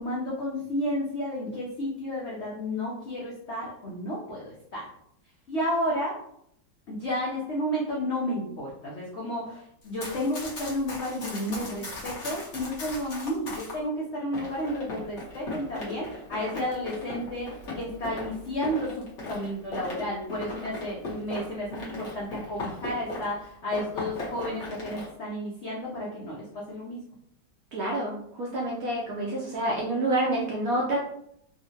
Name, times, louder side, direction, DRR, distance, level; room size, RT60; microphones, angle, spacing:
voice 1, 0.0-4.8 5.5-6.1 6.9-27.0, equal, 75° left, -5 dB, 0.6 m, -32 dB
Run, 9.8-13.8 14.3-23.4 23.7-25.1, left 2 dB, 50° left, 1.0 m, -38 dB
voice 2, 27.7-31.0, right 1 dB, 70° right, -3 dB, 0.8 m, -28 dB
3.6 x 2.1 x 2.7 m, 0.72 s
omnidirectional pair, 2.0 m